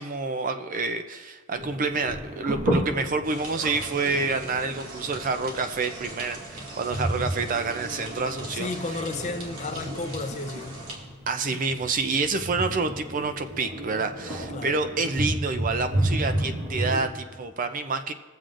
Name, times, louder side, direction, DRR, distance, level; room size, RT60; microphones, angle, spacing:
voice 1, 0.0-8.7 11.3-18.1, right 4 dB, 40° right, 0.5 m, -28 dB
sound 1, 1.5-17.0, right 1 dB, 65° right, 2.0 m, -32 dB
sound 2, 3.2-11.0, right 2 dB, 85° right, 2.2 m, -41 dB
voice 2, 8.5-10.8 14.5-14.8, left 3 dB, 30° left, 0.6 m, -33 dB
21.5 x 7.6 x 2.5 m
head